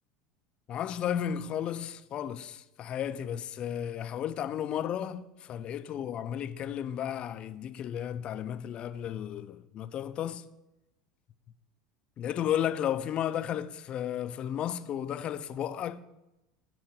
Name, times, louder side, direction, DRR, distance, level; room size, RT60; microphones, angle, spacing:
voice 1, 0.7-10.5 12.2-16.0, left 10 dB, 45° left, 0.4 m, -33 dB
7.6 x 3.8 x 6.2 m
hypercardioid pair, 85°, 3 cm